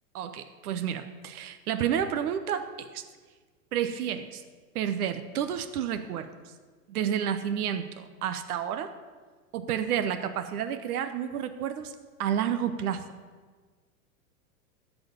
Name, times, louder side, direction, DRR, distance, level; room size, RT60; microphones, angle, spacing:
voice 1, 0.1-3.0 3.7-4.4 4.7-6.3 6.9-8.9 9.5-11.9 12.2-13.0, right 9 dB, 75° right, 9 dB, 1.0 m, -30 dB
13.5 x 4.9 x 8.0 m, 1.5 s
supercardioid pair, 150°, 45 cm